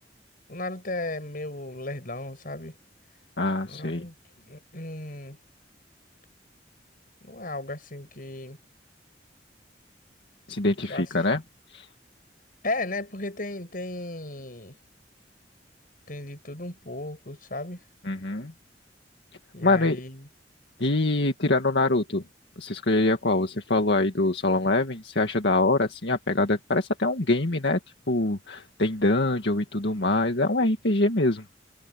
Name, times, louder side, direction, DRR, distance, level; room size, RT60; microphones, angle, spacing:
voice 1, 0.5-2.8 3.6-5.4 7.2-8.6 10.9-11.1 12.6-14.7 16.1-17.8 19.5-20.3, left 2 dB, 50° left, 7.3 m, -35 dB
voice 2, 3.4-4.1 10.5-11.4 11.7-11.9 18.0-18.5 19.6-20.0 20.8-22.2 22.6-27.8 28.1-31.4, left 2 dB, 75° left, 1.9 m, -24 dB
head